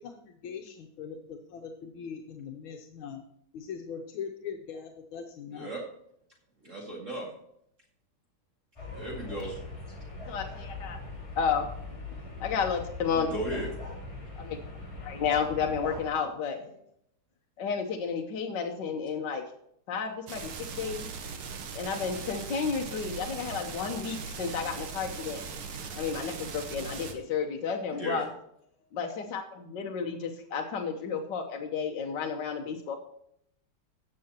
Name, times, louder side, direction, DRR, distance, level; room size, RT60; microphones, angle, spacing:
voice 1, 0.0-3.2 3.5-5.7, left 6 dB, 80° left, 3 dB, 1.7 m, -41 dB
voice 2, 5.5-5.8 6.6-7.3 8.9-9.6 13.1-13.7 27.9-28.3, right 1 dB, 35° right, -3 dB, 2.5 m, -36 dB
sound 1, 8.8-16.1, left 3 dB, 15° left, 4.9 m, -40 dB
voice 3, 10.3-11.0 11.4-11.7 12.4-13.3 14.4-14.6 15.0-16.7 17.6-19.4 19.9-21.1 21.7-25.4 25.9-28.3 28.9-33.0, left 6 dB, 65° left, 2 dB, 1.5 m, -32 dB
sound 2, 20.3-27.1, right 5 dB, 85° right, 2.0 m, -39 dB
17.5 x 6.7 x 2.9 m, 0.72 s
omnidirectional pair, 2.2 m